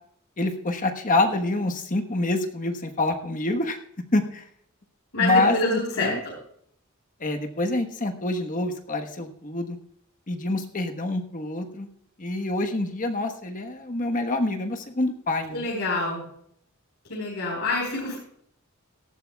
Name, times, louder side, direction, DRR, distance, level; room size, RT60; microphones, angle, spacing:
voice 1, 0.4-3.8 4.1-4.4 5.2-6.2 7.2-9.8 10.3-11.9 12.2-15.7, left 2 dB, 40° left, 5 dB, 1.3 m, -26 dB
voice 2, 5.1-6.3 15.5-16.2 17.1-18.2, left 2 dB, 80° left, -3 dB, 4.4 m, -26 dB
18.0 x 13.5 x 2.4 m, 0.67 s
head